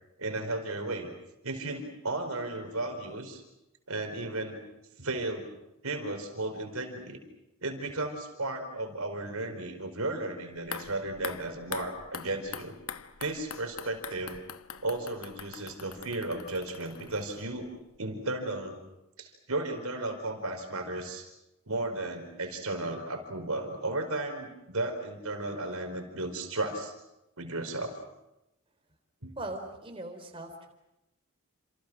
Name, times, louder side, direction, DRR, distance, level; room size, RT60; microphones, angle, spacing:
voice 1, 0.2-1.1 1.4-3.4 3.9-4.6 5.0-5.5 5.8-7.2 7.6-12.7 13.2-14.4 14.8-18.8 19.2-21.3 21.7-26.9 27.4-28.0 29.2-29.4, right 2 dB, 90° right, 6 dB, 4.5 m, -34 dB
sound 1, 10.6-17.7 17.9-18.0, left 7 dB, 80° left, 1.0 m, -43 dB
voice 2, 29.4-30.7, right 1 dB, 25° right, 3 dB, 4.0 m, -40 dB
29.0 x 27.0 x 6.2 m, 0.91 s
head